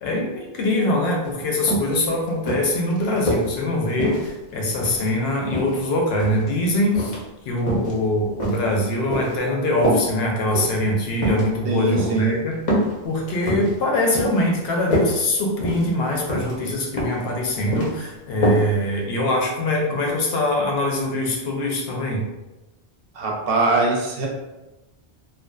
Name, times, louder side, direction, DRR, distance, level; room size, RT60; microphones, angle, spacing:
voice 1, 0.0-7.1 7.5-12.6 13.0-22.2, left 1 dB, 75° left, -1 dB, 0.8 m, -23 dB
sound 1, 1.3-1.4 1.7-1.9 2.5-3.5 4.0-5.1 5.5-6.4 6.9-7.2 7.6-7.9 8.4-9.4 9.8-10.1 10.5-10.8 11.2-11.4 11.9-12.2 12.7-12.9 13.3-13.7 14.1-14.4 14.7-15.1 15.6-15.9 16.3-16.5 17.0-17.3 17.5-17.9 18.4-18.6 19.0-19.1, equal, 45° left, 0.6 m, -24 dB
voice 2, 11.6-12.4 23.1-24.3, right 3 dB, 70° right, -2 dB, 0.7 m, -22 dB
2.5 x 2.2 x 2.2 m, 1.0 s
omnidirectional pair, 1.1 m